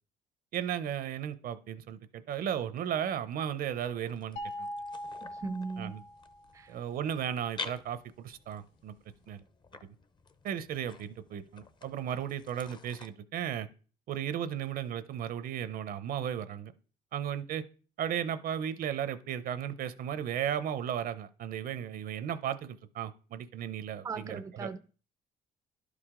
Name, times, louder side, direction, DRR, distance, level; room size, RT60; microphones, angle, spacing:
voice 1, 0.5-4.7 5.8-6.0 6.7-9.0 9.3-9.4 10.4-13.7 14.1-16.7 17.1-17.6 18.0-24.7, right 9 dB, 60° right, 0.7 m, -35 dB
sound 1, 3.8-13.1, left 4 dB, 25° left, 0.7 m, -49 dB
sound 2, 4.4-6.6, equal, 60° left, 2.3 m, -41 dB
voice 2, 5.2-6.0 6.5-6.8 24.0-24.8, right 4 dB, 20° right, 0.4 m, -38 dB
11.5 x 4.9 x 3.7 m
cardioid pair, 110°, 17 cm